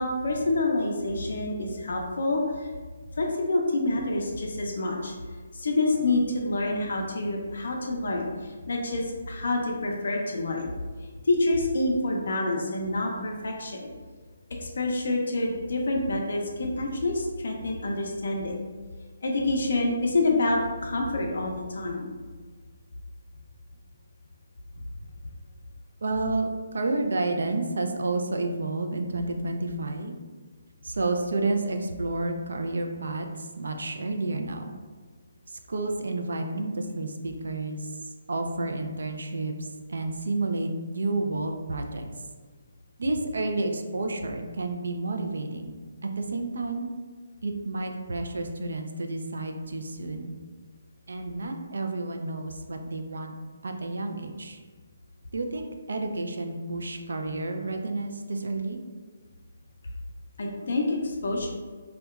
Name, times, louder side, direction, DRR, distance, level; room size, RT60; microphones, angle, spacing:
voice 1, 0.0-2.7 3.2-5.1 5.5-10.7 11.2-13.9 14.6-18.5 19.2-22.1 24.8-24.9 60.4-61.5, left 2 dB, 60° left, 0 dB, 0.4 m, -27 dB
voice 2, 26.0-30.1 30.8-34.7 35.5-37.9 38.3-42.1 43.0-45.8 46.2-46.9 47.4-50.3 51.1-53.3 53.6-54.6 55.3-58.8, right 2 dB, 80° right, 4 dB, 0.3 m, -30 dB
2.7 x 2.1 x 2.3 m, 1.5 s
hypercardioid pair, 175°, 0 cm